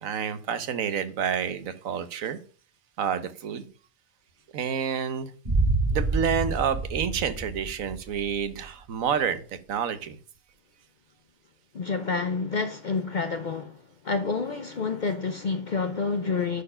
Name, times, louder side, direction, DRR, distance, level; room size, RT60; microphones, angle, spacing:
voice 1, 0.0-2.4 3.0-3.7 4.5-5.3 5.9-10.2, right 7 dB, 80° right, 1.3 m, -29 dB
sound 1, 5.4-8.4, right 3 dB, 30° right, 2.3 m, -27 dB
voice 2, 11.7-16.6, left 4 dB, 50° left, 0.6 m, -29 dB
10.0 x 4.4 x 5.6 m
omnidirectional pair, 1.4 m